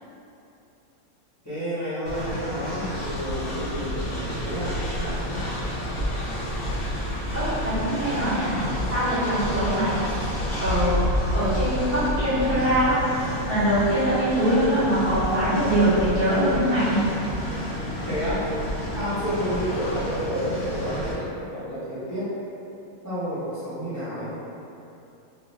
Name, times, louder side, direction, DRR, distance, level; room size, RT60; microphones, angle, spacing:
voice 1, 1.4-5.4 18.0-18.5 18.9-22.3 23.0-24.3, equal, 15° left, -15 dB, 0.8 m, -30 dB
Train, 2.1-21.1, equal, 60° left, 0.8 m, -30 dB
voice 2, 7.3-8.6 8.9-9.9 10.6-10.9 11.3-17.0, right 1 dB, 45° right, -14 dB, 1.0 m, -23 dB
2.5 x 2.4 x 3.0 m, 2.8 s
omnidirectional pair, 1.5 m